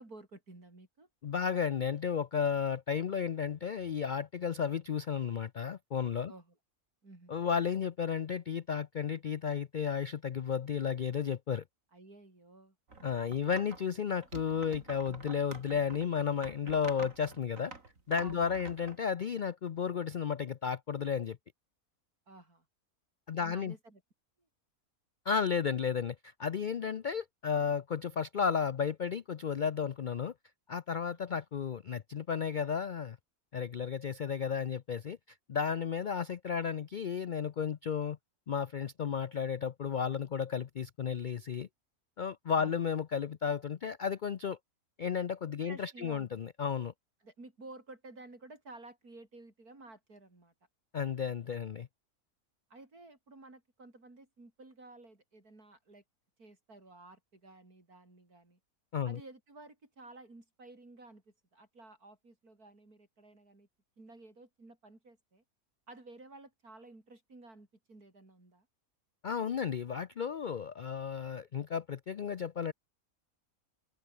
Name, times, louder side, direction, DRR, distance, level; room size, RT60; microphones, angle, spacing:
voice 1, 0.0-1.1 6.3-6.6 7.0-7.4 11.9-12.8 18.2-18.7 22.3-22.6 23.4-24.0 31.0-31.2 42.6-42.8 45.6-46.3 47.2-50.5 52.7-56.0 56.4-58.6 59.0-61.2 61.5-63.7 64.0-65.4 65.9-68.7, right 2 dB, 85° right, 6.0 m, -53 dB
voice 2, 1.2-6.3 7.3-11.6 13.0-17.7 18.1-21.4 23.3-23.7 25.3-30.3 30.7-33.2 33.5-35.2 35.5-38.2 38.5-41.7 42.2-44.6 45.0-46.9 50.9-51.9 58.9-59.2 69.2-72.7, left 7 dB, 65° left, 0.4 m, -33 dB
sound 1, 12.9-13.8 14.2-19.0, right 3 dB, 60° right, 3.7 m, -48 dB
omnidirectional pair, 1.6 m